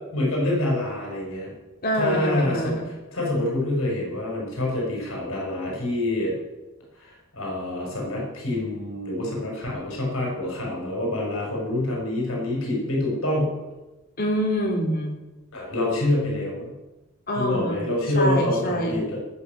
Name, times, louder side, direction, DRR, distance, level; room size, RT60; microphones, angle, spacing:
voice 1, 0.1-1.5 2.0-6.3 6.9-13.5 15.5-16.7 17.4-19.2, left 1 dB, 75° left, -2 dB, 5.8 m, -26 dB
voice 2, 1.8-2.9 14.2-15.2 17.3-17.8 18.1-19.0, equal, 45° left, 0 dB, 3.2 m, -25 dB
19.0 x 6.6 x 7.9 m, 1.1 s
head